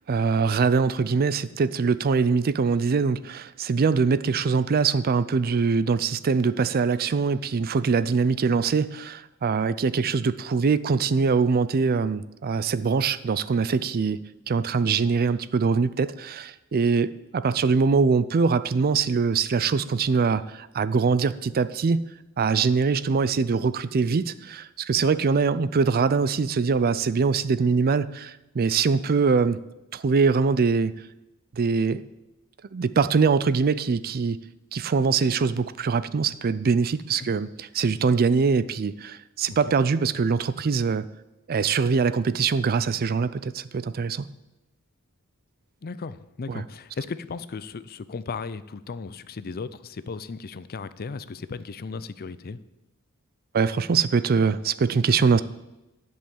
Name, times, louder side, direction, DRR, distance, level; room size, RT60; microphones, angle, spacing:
voice 1, 0.1-14.2 14.5-22.0 22.4-29.6 29.9-30.9 31.5-32.0 32.7-34.4 34.7-41.0 41.5-44.3 46.5-46.6 53.5-55.4, right 5 dB, 45° right, 16 dB, 0.4 m, -23 dB
voice 2, 45.8-52.6, left 4 dB, 45° left, 15 dB, 0.5 m, -36 dB
10.5 x 5.5 x 8.4 m, 0.97 s
head